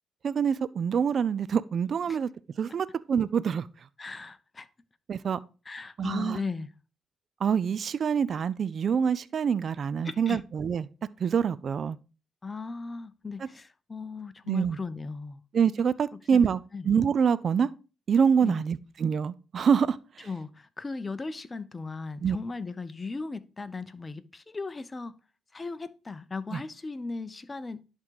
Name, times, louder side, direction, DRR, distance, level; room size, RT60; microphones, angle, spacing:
voice 1, 0.2-2.3 2.6-3.7 5.1-5.4 6.0-6.4 7.4-10.9 11.2-12.0 14.5-14.8 15.5-16.6 16.8-17.7 18.1-20.3 22.2-22.4 26.5-26.6, right 7 dB, 60° right, 0.4 m, -26 dB
voice 2, 4.0-4.7 5.7-6.7 10.0-10.4 12.4-15.4 16.3-16.4 16.7-16.9 18.4-18.6 20.2-25.1 25.5-27.8, left 4 dB, 30° left, 0.8 m, -37 dB
11.0 x 3.7 x 4.7 m
supercardioid pair, 55°, 0 cm